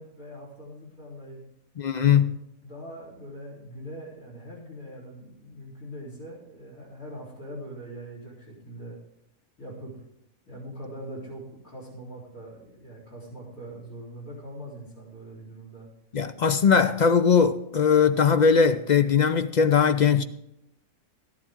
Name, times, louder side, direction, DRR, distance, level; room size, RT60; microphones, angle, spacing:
voice 1, 0.0-1.4 2.0-2.4 2.6-9.0 9.6-10.0 10.5-15.9, equal, 85° left, 4.4 m, -42 dB
voice 2, 1.8-2.4 16.1-20.2, left 6 dB, 60° left, 0.4 m, -20 dB
13.5 x 12.0 x 3.7 m
omnidirectional pair, 1.4 m